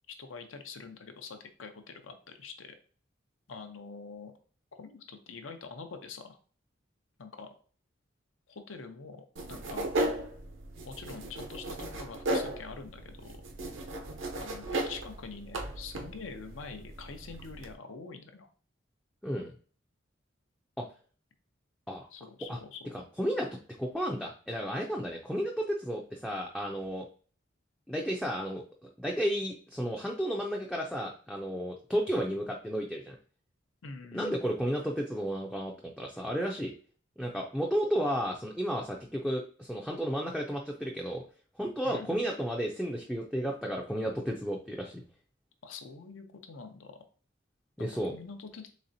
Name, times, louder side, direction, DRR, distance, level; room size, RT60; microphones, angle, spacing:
voice 1, 0.2-2.8 3.5-4.3 4.8-6.4 7.2-7.5 8.5-9.9 10.8-13.4 14.4-18.5 22.1-23.0 33.8-34.4 41.8-42.1 45.6-47.0 47.8-48.7, left 4 dB, 85° left, 6 dB, 0.7 m, -45 dB
sound 1, 9.4-17.7, right 1 dB, 75° right, 0.7 m, -36 dB
voice 2, 22.9-23.5 23.8-27.1 27.9-33.2 34.1-36.7 37.2-41.2 41.6-45.0 47.8-48.1, equal, 5° left, -1 dB, 0.4 m, -33 dB
4.1 x 3.2 x 2.7 m, 0.42 s
head